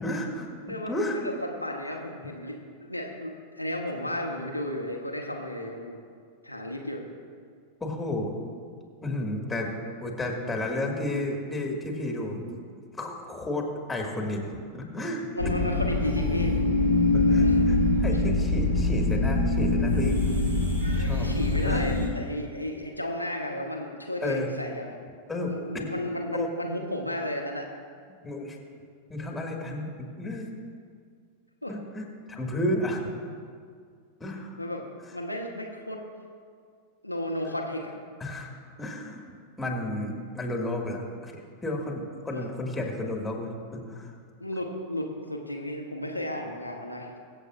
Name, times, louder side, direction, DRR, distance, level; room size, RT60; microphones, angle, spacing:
voice 1, 0.0-0.5 0.9-1.2 7.8-8.3 9.0-9.7 10.0-12.6 13.0-14.4 14.7-15.3 15.5-15.6 17.1-20.2 20.6-21.3 21.6-21.9 24.2-24.5 25.3-25.9 26.3-26.5 28.2-28.6 29.1-30.5 31.7-33.3 34.2-34.6 38.2-38.5 38.8-39.2 39.6-44.1, left 1 dB, 10° left, 0 dB, 2.0 m, -32 dB
voice 2, 0.6-6.0 6.4-7.0 15.3-16.5 17.2-17.6 21.0-25.0 25.4-27.7 31.6-31.7 34.6-34.8 35.1-36.0 37.0-37.9 42.3-42.5 44.4-47.1, left 1 dB, 90° left, 0 dB, 1.1 m, -33 dB
sound 1, 15.4-22.1, left 2 dB, 70° right, 3.1 m, -24 dB
23.0 x 7.9 x 2.6 m, 2.1 s
figure-of-eight pair, 90°, 0 cm